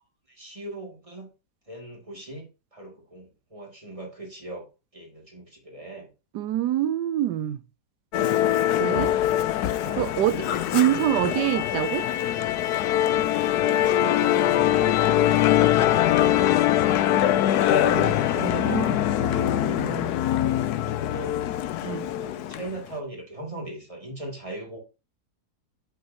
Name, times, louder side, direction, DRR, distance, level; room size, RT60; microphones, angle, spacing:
voice 1, 0.3-1.3 1.7-4.7 4.9-6.1 9.6-11.4 13.6-17.1 17.6-18.5 19.8-20.2 20.6-21.4 22.1-24.8, right 2 dB, 20° right, 2.5 m, -40 dB
voice 2, 6.3-7.6 8.8-9.1 10.0-10.4 10.7-12.1 17.5-20.1 21.8-22.1, right 12 dB, 90° right, 1.2 m, -26 dB
Musical instrument, 8.1-22.8, left 12 dB, 75° left, 1.2 m, -23 dB
8.5 x 8.1 x 2.9 m
omnidirectional pair, 1.7 m